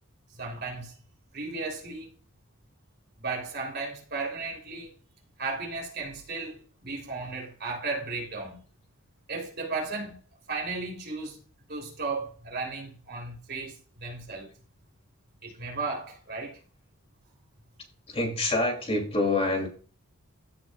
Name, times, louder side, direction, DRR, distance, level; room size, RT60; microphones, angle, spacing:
voice 1, 0.3-0.9 1.3-2.1 3.2-4.9 5.4-8.6 9.3-10.2 10.5-11.4 11.7-14.5 15.4-16.6, right 3 dB, 50° right, 3.7 m, -35 dB
voice 2, 18.1-19.7, left 2 dB, 25° left, 3.1 m, -26 dB
16.5 x 6.0 x 2.5 m
head